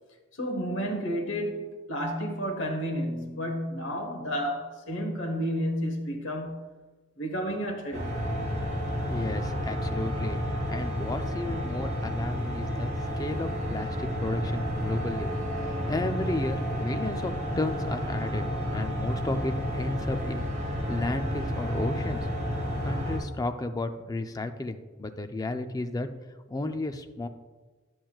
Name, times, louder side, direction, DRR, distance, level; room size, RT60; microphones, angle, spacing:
voice 1, 0.4-6.7 7.2-8.2, equal, 60° left, 1.1 m, -31 dB
sound 1, 7.9-23.2, equal, 40° right, 2.7 m, -31 dB
voice 2, 9.1-10.4 10.7-15.3 15.6-18.4 18.7-22.3 22.8-26.1 26.5-27.3, left 2 dB, 15° left, 0.4 m, -33 dB
10.0 x 7.7 x 2.3 m
head